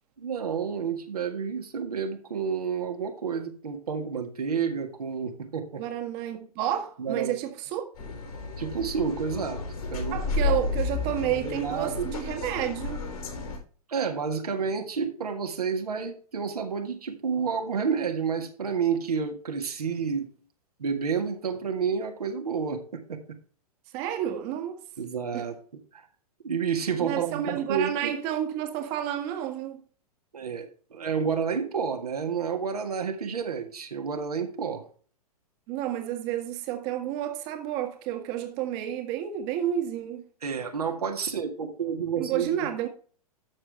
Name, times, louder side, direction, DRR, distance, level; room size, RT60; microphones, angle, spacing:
voice 1, 0.2-5.8 7.0-7.3 8.6-9.6 9.9-10.6 11.3-12.1 13.9-20.3 20.8-23.2 25.0-25.6 25.9-26.0 26.4-28.1 30.3-34.8 40.4-42.7, right 6 dB, 75° right, 1.8 m, -30 dB
voice 2, 5.8-8.1 10.1-13.0 23.9-24.8 25.3-25.5 27.0-29.8 35.7-40.2 42.2-42.9, right 11 dB, 40° right, 1.6 m, -30 dB
sound 1, 8.0-13.6, left 4 dB, 65° left, 4.1 m, -32 dB
13.0 x 6.3 x 3.5 m
figure-of-eight pair, 110°, 20 cm